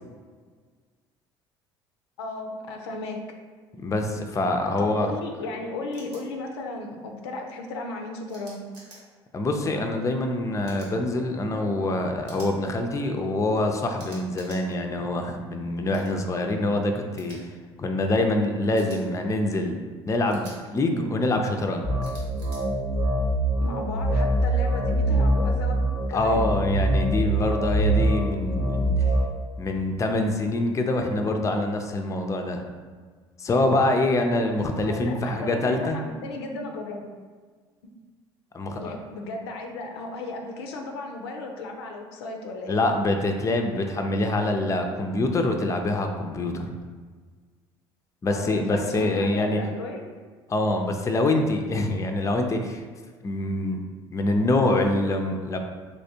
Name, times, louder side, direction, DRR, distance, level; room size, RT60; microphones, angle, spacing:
voice 1, 2.2-3.2 4.8-8.7 23.6-25.8 26.1-26.4 34.8-37.1 37.8-37.9 38.8-42.8 48.3-50.1, left 2 dB, 85° left, 3 dB, 0.4 m, -35 dB
voice 2, 3.7-5.1 9.3-17.4 17.8-19.8 20.1-21.9 26.1-28.9 29.6-32.7 33.4-36.0 38.5-38.9 42.7-46.7 48.2-49.6 50.5-52.8 53.2-53.8 54.1-55.6, left 2 dB, 25° left, 4 dB, 0.4 m, -25 dB
sound 1, 5.9-6.2 8.3-9.0 10.6-10.9 12.2-12.5 14.0-14.6 15.9-16.1 17.2-17.4 18.8-19.0 20.3-20.6 22.0-22.6, right 2 dB, 75° right, 1.2 m, -47 dB
sound 2, 21.8-29.2, right 1 dB, 45° right, 0.9 m, -24 dB
3.3 x 3.0 x 2.7 m, 1.5 s
hypercardioid pair, 65°, 13 cm